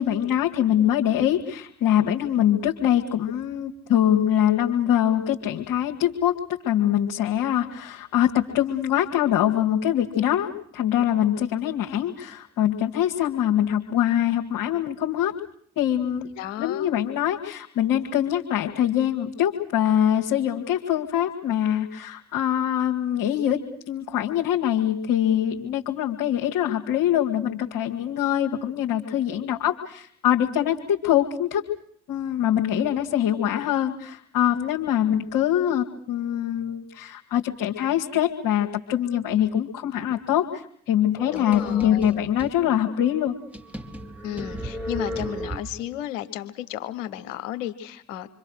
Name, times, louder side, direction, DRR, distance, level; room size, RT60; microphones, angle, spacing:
voice 1, 0.0-15.3 15.8-16.3 16.6-23.6 23.9-31.6 32.1-43.4, left 11 dB, 65° left, -1 dB, 2.1 m, -23 dB
voice 2, 16.3-16.9 41.3-42.2 44.2-48.3, left 12 dB, 80° left, 12 dB, 1.4 m, -33 dB
sound 1, 41.2-42.6 43.1-43.2 43.5-46.0, equal, 5° right, 2.8 m, -34 dB
26.5 x 24.5 x 6.5 m, 0.64 s
figure-of-eight pair, 45°, 38 cm